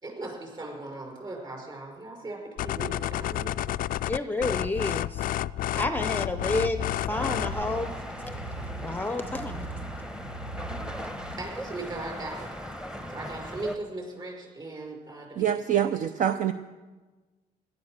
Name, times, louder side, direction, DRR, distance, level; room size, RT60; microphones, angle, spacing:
voice 1, 0.0-3.8 4.1-4.2 11.4-12.5 13.1-15.5, right 2 dB, 25° right, 0 dB, 5.9 m, -38 dB
sound 1, 2.6-7.6, left 13 dB, 55° left, 0.4 m, -30 dB
voice 2, 4.1-5.3 5.7-7.9 8.8-9.7, left 2 dB, 10° left, 9 dB, 0.7 m, -30 dB
sound 2, 6.1-11.4, right 2 dB, 85° right, 1.7 m, -40 dB
sound 3, 7.1-13.8, equal, 5° right, 1.0 m, -38 dB
voice 3, 15.4-16.5, right 9 dB, 50° right, 10 dB, 0.6 m, -25 dB
17.5 x 11.5 x 6.6 m, 1.3 s
cardioid pair, 110°, 17 cm